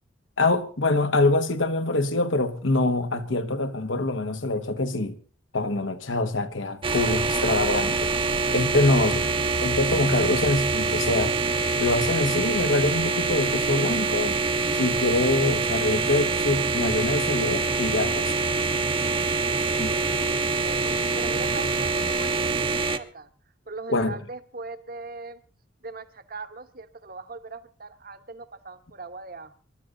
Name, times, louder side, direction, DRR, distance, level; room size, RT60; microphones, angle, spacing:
voice 1, 0.4-5.2 5.5-8.1 8.5-9.2 9.6-11.3 11.8-14.4 14.7-18.3 19.8-20.0 23.9-24.2, left 2 dB, 80° left, 1.5 m, -24 dB
sound 1, 6.8-23.0, right 3 dB, 25° right, 0.9 m, -25 dB
voice 2, 8.7-9.4 19.8-23.3 23.7-25.4 25.8-29.5, right 3 dB, 50° right, 1.2 m, -40 dB
23.5 x 11.5 x 3.9 m
head